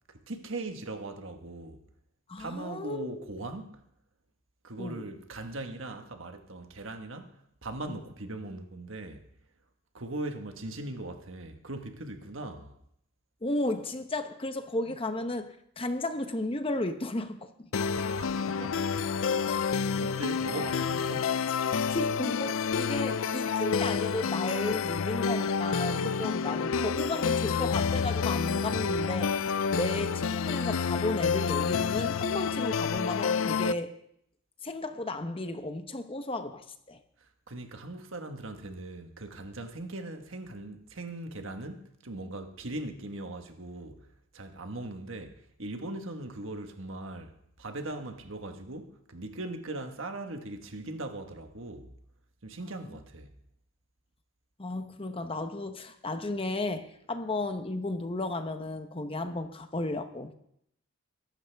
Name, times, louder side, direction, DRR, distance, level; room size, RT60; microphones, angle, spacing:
voice 1, 0.1-1.8 2.4-3.8 4.6-9.3 9.9-12.8 17.9-19.7 20.0-21.3 37.2-44.1 44.3-51.9 52.4-53.3, right 2 dB, 65° right, 1.4 m, -40 dB
voice 2, 2.3-3.3 4.8-5.0 7.9-8.0 13.4-17.7 21.7-33.9 34.6-37.0 54.6-60.3, left 2 dB, 25° left, 0.9 m, -34 dB
sound 1, 17.7-33.7, left 6 dB, 70° left, 0.4 m, -29 dB
22.0 x 12.0 x 3.5 m
head